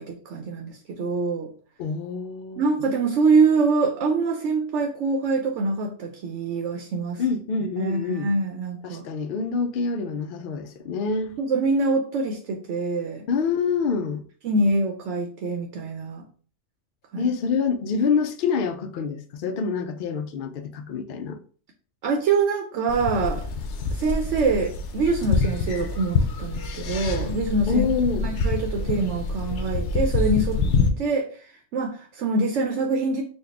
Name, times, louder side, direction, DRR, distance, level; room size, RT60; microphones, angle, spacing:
voice 1, 0.0-1.5 2.6-7.2 7.8-9.1 11.4-13.2 14.4-16.2 17.1-17.3 22.0-23.5 23.9-27.9 28.2-30.6 31.0-33.2, right 3 dB, 85° right, 1.0 m, -24 dB
voice 2, 1.8-2.6 7.2-8.3 8.8-11.4 13.3-14.2 17.2-21.4 27.7-28.3, left 5 dB, 60° left, 0.6 m, -26 dB
sound 1, 22.9-30.9, left 4 dB, 80° left, 0.9 m, -26 dB
4.2 x 2.3 x 3.3 m
omnidirectional pair, 1.2 m